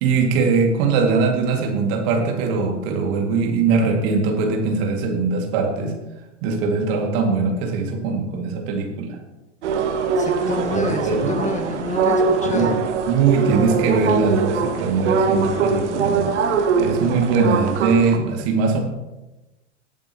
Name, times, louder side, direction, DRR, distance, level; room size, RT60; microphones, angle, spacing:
voice 1, 0.0-5.9 6.4-9.2 10.7-11.3 12.4-12.7 13.1-18.8, right 4 dB, 55° right, 2 dB, 2.3 m, -21 dB
sound 1, 9.6-18.2, right 5 dB, 70° right, 1.2 m, -22 dB
voice 2, 10.2-12.8, left 3 dB, 20° left, 4 dB, 1.5 m, -27 dB
18.0 x 8.6 x 3.0 m, 1.1 s
figure-of-eight pair, 80°, 36 cm